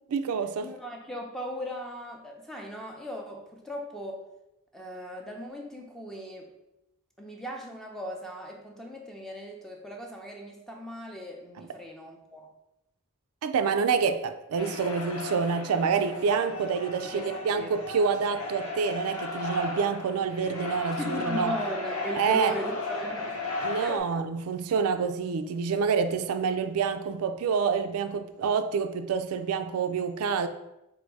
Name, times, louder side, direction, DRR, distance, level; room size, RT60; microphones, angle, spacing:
voice 1, 0.1-0.7 11.6-11.7 13.4-21.6 22.2-22.5 23.6-30.5, right 5 dB, 80° right, 0.4 m, -27 dB
voice 2, 0.6-4.2 4.7-6.5 7.2-12.5 17.1-17.8 21.0-23.4 23.8-24.2, equal, ahead, 0.6 m, -38 dB
sound 1, 14.6-24.0, left 3 dB, 75° left, 0.8 m, -35 dB
4.0 x 2.6 x 4.6 m
head